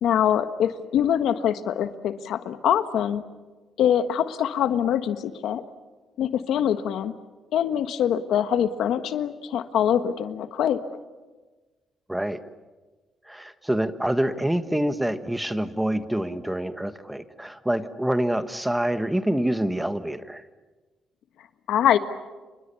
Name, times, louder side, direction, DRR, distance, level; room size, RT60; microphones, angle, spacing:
voice 1, 0.0-3.2 3.8-5.6 6.2-7.1 7.5-10.8 21.7-22.0, left 9 dB, 80° left, 10 dB, 1.4 m, -24 dB
voice 2, 12.1-12.4 13.3-20.4, right 1 dB, 5° right, 10 dB, 1.4 m, -26 dB
29.5 x 25.5 x 7.1 m, 1.3 s
cardioid pair, 90°, 0 cm